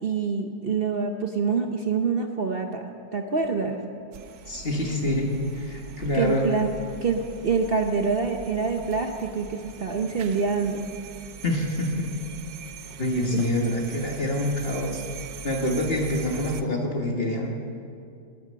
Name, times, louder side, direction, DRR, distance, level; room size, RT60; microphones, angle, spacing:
voice 1, 0.0-3.8 6.1-6.7 7.0-10.9, right 5 dB, 45° right, 4 dB, 0.7 m, -26 dB
sound 1, 4.1-16.6, right 7 dB, 80° right, 1.4 m, -42 dB
voice 2, 4.5-6.5 11.4-12.1 13.0-15.0 15.4-17.5, left 1 dB, 35° left, 0 dB, 1.8 m, -26 dB
20.5 x 9.3 x 6.5 m, 2.4 s
omnidirectional pair, 1.9 m